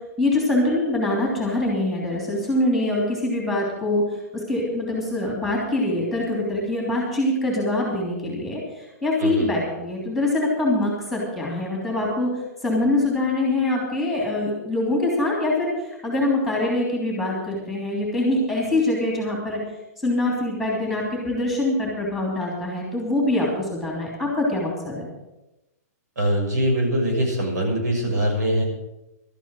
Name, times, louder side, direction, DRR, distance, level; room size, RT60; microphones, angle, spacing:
voice 1, 0.2-4.0 4.5-8.6 9.0-12.3 12.6-15.7 16.0-19.6 20.0-25.0, left 2 dB, ahead, -3 dB, 3.0 m, -24 dB
voice 2, 9.2-9.5 26.2-28.6, right 1 dB, 85° right, 0 dB, 6.5 m, -22 dB
12.5 x 9.1 x 7.6 m, 0.96 s
hypercardioid pair, 165°, 9 cm